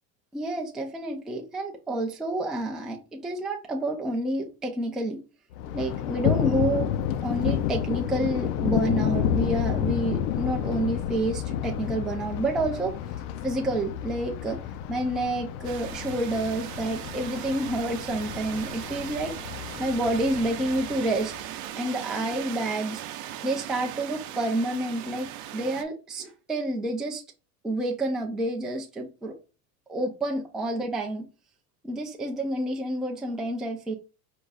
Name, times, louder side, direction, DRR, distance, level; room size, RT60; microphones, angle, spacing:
voice 1, 0.3-5.2 5.7-6.9 7.2-12.9 13.4-14.6 14.9-19.3 19.8-21.3 21.7-23.0 23.4-27.2 27.6-29.3 29.9-31.3 31.8-33.9, right 1 dB, ahead, 0.3 m, -29 dB
Thunder, 5.5-21.5, left 10 dB, 65° left, 0.6 m, -30 dB
sound 1, 15.6-25.8, right 12 dB, 50° right, 0.7 m, -39 dB
4.8 x 2.3 x 3.9 m
supercardioid pair, 125°, 48 cm